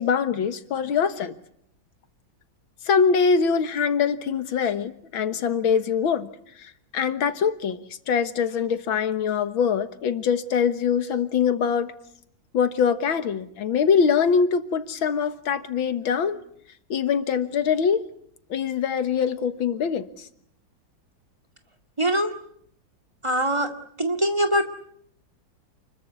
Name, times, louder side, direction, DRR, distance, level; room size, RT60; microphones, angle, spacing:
voice 1, 0.0-1.4 2.8-6.3 6.6-11.9 12.5-16.4 16.9-18.0 18.5-20.3, left 6 dB, 85° left, 11 dB, 2.2 m, -23 dB
voice 2, 22.0-22.3 23.2-23.7 24.0-24.6, equal, 15° right, 8 dB, 2.2 m, -22 dB
29.0 x 21.5 x 8.2 m, 0.69 s
omnidirectional pair, 2.1 m